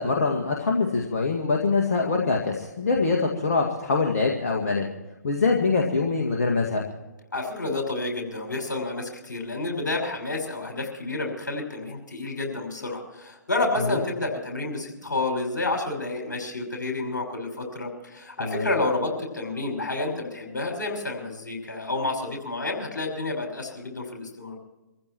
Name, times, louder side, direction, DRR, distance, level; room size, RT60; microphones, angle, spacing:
voice 1, 0.0-4.9 5.2-6.8 13.9-14.0 18.4-18.7, left 4 dB, 50° left, 0 dB, 1.9 m, -24 dB
voice 2, 7.3-24.6, left 2 dB, 70° left, 1 dB, 5.7 m, -29 dB
26.0 x 15.0 x 3.1 m, 1.1 s
figure-of-eight pair, 125°, 10 cm